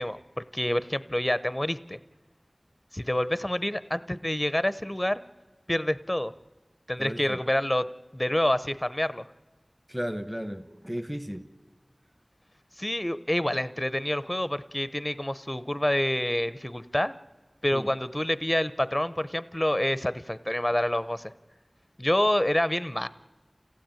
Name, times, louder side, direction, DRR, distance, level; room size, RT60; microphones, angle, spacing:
voice 1, 0.0-2.0 2.9-5.2 5.7-6.3 6.9-7.9 8.1-9.2 12.8-17.1 17.6-21.3 22.0-23.1, left 1 dB, 20° left, 15 dB, 0.7 m, -27 dB
voice 2, 7.0-7.4 9.9-11.5 17.7-17.9, equal, 5° right, 10 dB, 1.2 m, -34 dB
27.5 x 16.0 x 9.0 m, 1.2 s
wide cardioid pair, 45°, 0 cm